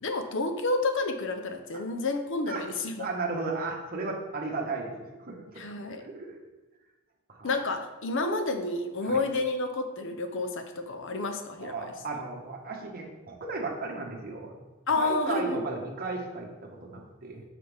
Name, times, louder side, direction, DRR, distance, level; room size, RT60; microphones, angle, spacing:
voice 1, 0.0-3.1 5.6-6.1 7.4-11.9 14.9-15.6, left 3 dB, 60° left, 6 dB, 0.7 m, -30 dB
voice 2, 3.0-6.3 7.3-7.5 9.0-9.2 11.6-14.5 15.0-17.4, right 3 dB, 45° right, -1 dB, 1.2 m, -35 dB
7.9 x 5.1 x 3.5 m, 1.1 s
head